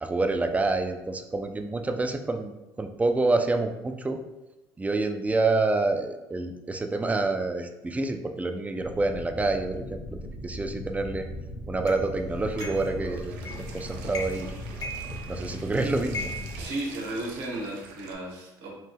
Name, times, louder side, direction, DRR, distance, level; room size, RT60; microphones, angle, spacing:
voice 1, 0.0-2.5 2.8-4.2 4.8-11.3 11.7-13.4 13.7-14.5 15.3-16.2, right 3 dB, 15° right, 6 dB, 0.4 m, -27 dB
sound 1, 8.8-16.7, left 1 dB, 75° left, 0.7 m, -38 dB
sound 2, 11.9-12.0 12.6-12.9 13.4-13.7 14.1-14.5 14.8-15.6 16.1-17.4, left 1 dB, 40° left, 0.6 m, -38 dB
sound 3, 12.2-18.1, right 3 dB, 85° right, 0.4 m, -45 dB
voice 2, 16.6-18.8, right 1 dB, 70° right, -2 dB, 0.9 m, -34 dB
3.2 x 2.1 x 3.3 m, 0.99 s
supercardioid pair, 75°, 9 cm